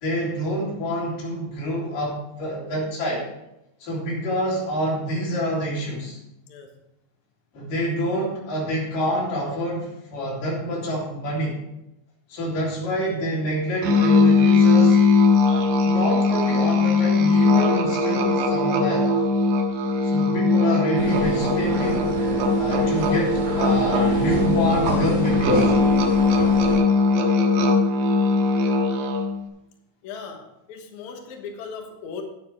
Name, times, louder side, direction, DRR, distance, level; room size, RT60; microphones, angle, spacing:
voice 1, 0.0-3.3 3.8-6.2 7.5-11.6 12.3-15.0 15.5-19.1 20.0-22.1 22.5-25.7, equal, 50° left, -5 dB, 4.8 m, -27 dB
Musical instrument, 13.8-29.4, left 3 dB, 70° right, 3.3 m, -20 dB
sound 1, 21.0-26.8, equal, 35° right, 5.4 m, -28 dB
voice 2, 30.0-32.2, left 5 dB, 90° left, 3 dB, 1.6 m, -38 dB
9.7 x 9.4 x 4.7 m, 0.87 s
omnidirectional pair, 5.4 m